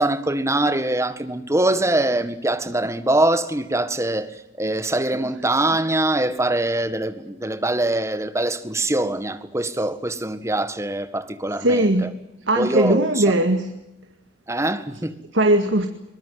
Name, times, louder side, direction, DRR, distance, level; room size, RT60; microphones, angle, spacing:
voice 1, 0.0-4.3 4.6-12.1 12.5-13.2 14.5-15.1, right 1 dB, 15° right, 1.6 m, -23 dB
voice 2, 11.6-12.0 12.5-13.7 15.3-15.9, right 1 dB, 80° right, 2.1 m, -19 dB
23.0 x 20.5 x 9.5 m
head